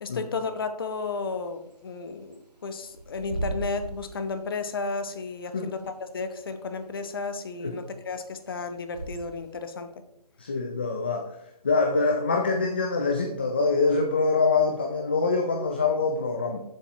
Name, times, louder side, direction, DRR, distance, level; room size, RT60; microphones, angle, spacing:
voice 1, 0.0-5.8 6.1-9.9, left 4 dB, 35° left, 9 dB, 1.0 m, -33 dB
Bird / Wind, 0.9-9.6, right 2 dB, 90° right, 2.5 m, -40 dB
voice 2, 10.4-11.4 11.6-16.6, left 4 dB, 15° left, 4 dB, 0.4 m, -25 dB
14.5 x 7.3 x 2.9 m, 0.82 s
figure-of-eight pair, 155°, 21 cm